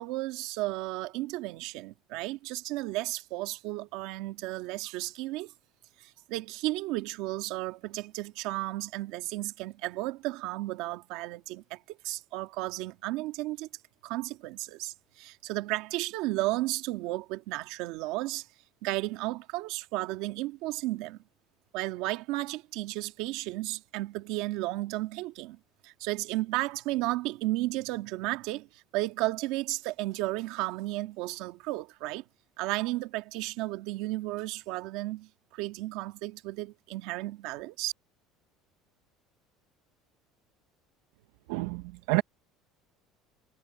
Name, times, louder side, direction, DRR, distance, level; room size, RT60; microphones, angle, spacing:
voice 1, 0.0-5.5 6.0-13.7 14.0-18.5 18.8-21.2 21.7-25.6 25.8-32.2 32.6-37.9, right 18 dB, 60° right, 1.8 m, -33 dB
voice 2, 41.5-42.2, right 21 dB, 80° right, 0.7 m, -28 dB
cardioid pair, 175°, 0 cm